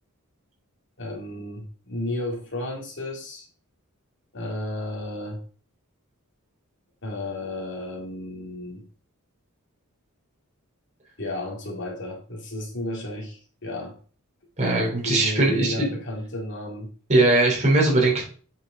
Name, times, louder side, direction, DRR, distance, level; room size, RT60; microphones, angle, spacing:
voice 1, 1.0-3.5 4.3-5.4 7.0-8.8 11.2-14.0 15.0-16.9, left 1 dB, 60° left, 0 dB, 2.2 m, -32 dB
voice 2, 14.6-15.9 17.1-18.2, right 2 dB, 35° right, -2 dB, 3.4 m, -20 dB
8.4 x 5.3 x 3.8 m, 0.40 s
head